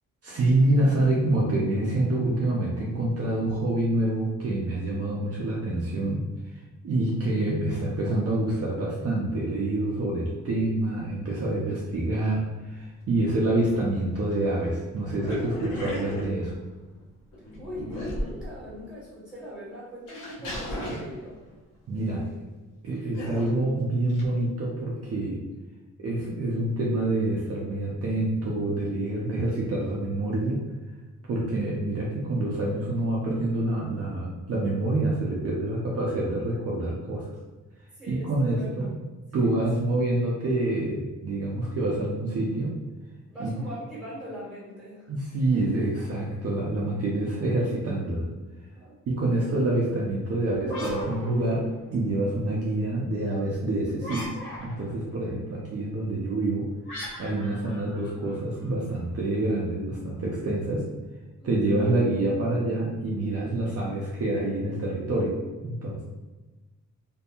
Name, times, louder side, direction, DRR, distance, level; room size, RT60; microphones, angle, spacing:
voice 1, 0.2-6.2 6.5-16.5 21.9-22.2 22.8-25.4 26.0-30.6 31.2-37.3 38.1-38.9 39.3-42.8 43.4-43.5 45.1-48.3 49.1-56.7 57.2-60.9 61.4-66.0, right 2 dB, 50° right, -4 dB, 0.5 m, -27 dB
sound 1, 13.3-13.4 13.7-14.5 15.0-16.9 17.3-18.8 19.4-19.5 20.1-21.6 23.1-23.6 24.1-24.2, equal, 85° left, 1.0 m, -36 dB
voice 2, 17.5-21.3 22.0-22.3 37.9-38.9 39.3-39.5 43.3-45.1 48.7-49.0 61.4-61.5, equal, 5° right, -8 dB, 1.5 m, -41 dB
sound 2, 50.6-52.1 54.0-55.0 56.9-58.7, left 1 dB, 40° left, 0.9 m, -37 dB
2.6 x 2.6 x 2.3 m, 1.2 s
wide cardioid pair, 120°, 31 cm